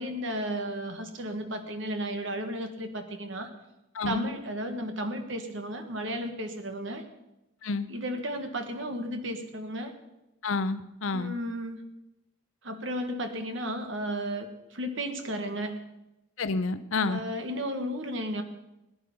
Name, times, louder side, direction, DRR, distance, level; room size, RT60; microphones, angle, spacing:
voice 1, 0.0-3.5 4.0-7.1 7.9-9.9 11.1-11.8 12.6-15.8 17.1-18.4, equal, 65° right, 6 dB, 1.6 m, -34 dB
voice 2, 3.9-4.3 7.6-7.9 10.4-11.4 16.4-17.2, left 3 dB, 75° left, 12 dB, 0.7 m, -29 dB
19.5 x 9.5 x 5.5 m, 0.93 s
head